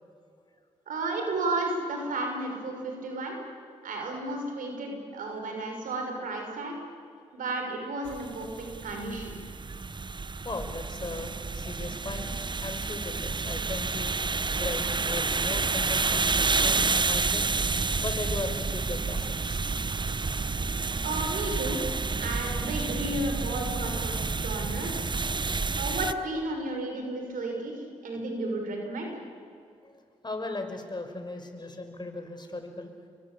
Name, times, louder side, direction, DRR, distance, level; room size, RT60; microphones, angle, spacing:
voice 1, 0.9-3.4 3.8-6.8 7.3-8.5 8.8-9.4 21.0-21.8 22.2-25.1 25.8-27.7 28.0-29.1, right 2 dB, 75° right, 2 dB, 6.3 m, -33 dB
sound 1, 8.1-26.1, right 4 dB, 35° right, 1.0 m, -29 dB
voice 2, 10.4-17.5 18.0-19.8 20.8-20.9 29.8-32.9, left 2 dB, 30° left, 5 dB, 5.8 m, -38 dB
27.0 x 24.0 x 8.6 m, 2.4 s
supercardioid pair, 40°, 14 cm